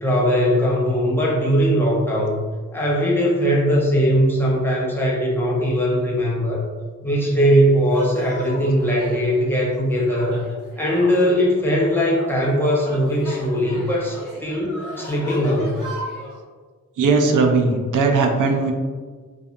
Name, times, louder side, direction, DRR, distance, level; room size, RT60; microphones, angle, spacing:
voice 1, 0.0-2.4 2.7-6.6 7.0-10.4 10.8-15.9, equal, 5° left, -4 dB, 0.5 m, -20 dB
sound 1, 7.9-16.4, equal, 30° right, 1.4 m, -37 dB
voice 2, 17.0-18.7, right 4 dB, 80° right, 3 dB, 0.5 m, -18 dB
2.6 x 2.3 x 2.4 m, 1.5 s
wide cardioid pair, 125°, 31 cm